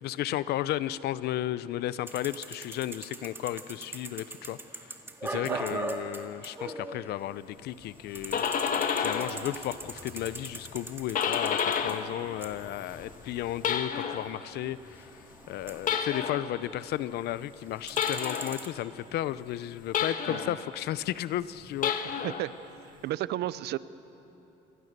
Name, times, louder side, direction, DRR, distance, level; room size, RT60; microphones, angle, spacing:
voice 1, 0.0-4.6 4.9-5.0 5.2-8.4 9.0-15.1 15.5-22.2, left 13 dB, 75° left, 16 dB, 0.7 m, -34 dB
sound 1, 2.1-7.5 7.8-17.1 17.5-18.7, right 2 dB, 15° right, 2.0 m, -42 dB
voice 2, 5.3-5.9 20.2-20.6 22.2-22.5 23.0-23.8, right 15 dB, 75° right, 17 dB, 0.7 m, -33 dB
sound 2, 8.0-9.4 9.8-12.2 12.5-14.3 15.8-16.5 17.9-18.6 19.9-20.6 21.7-22.5, left 7 dB, 55° left, 1.6 m, -30 dB
28.5 x 22.5 x 6.8 m, 3.0 s
cardioid pair, 110°, 17 cm